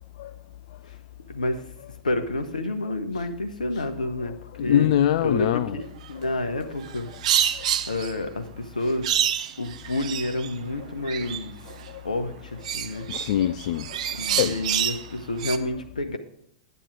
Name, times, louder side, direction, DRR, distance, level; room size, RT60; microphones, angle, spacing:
voice 1, 1.3-1.6 2.0-4.3 4.6-4.9 5.2-7.1 7.9-9.1 9.6-11.5 12.0-13.1 14.1-16.2, left 2 dB, 85° left, 7 dB, 1.3 m, -29 dB
voice 2, 4.6-5.8 7.5-7.7 11.9-12.0 12.9-14.0 14.3-14.6, left 11 dB, 55° left, 14 dB, 0.4 m, -24 dB
sound 1, 6.8-8.1 9.0-10.6 11.0-11.9 12.6-15.1 15.4-15.6, right 10 dB, 60° right, 0.7 m, -27 dB
9.8 x 9.1 x 4.8 m, 0.75 s
figure-of-eight pair, 100°, 4 cm